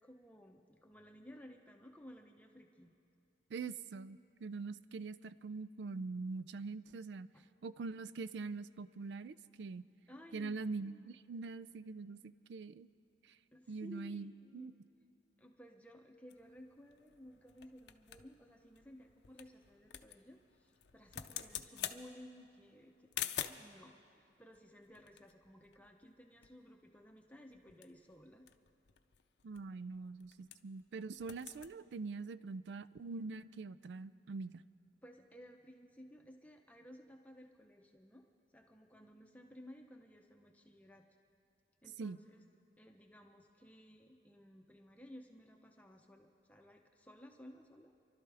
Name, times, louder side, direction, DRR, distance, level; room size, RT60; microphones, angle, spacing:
voice 1, 0.0-3.0 7.3-7.4 10.1-10.5 10.8-11.0 13.5-14.6 15.4-28.5 35.0-38.3 38.5-41.0 41.8-42.4 42.8-47.9, equal, 10° left, 2 dB, 0.7 m, -57 dB
voice 2, 3.5-7.3 7.6-9.8 10.3-12.9 13.2-13.4 13.7-14.7 29.4-34.6 42.0-42.2, right 4 dB, 70° right, 15 dB, 0.4 m, -44 dB
sound 1, 16.3-23.8 24.5-26.2 26.4-26.5 26.8-27.1 27.5-30.8 31.1-31.7, left 10 dB, 65° left, 0.6 m, -47 dB
29.0 x 12.0 x 3.4 m, 2.6 s
head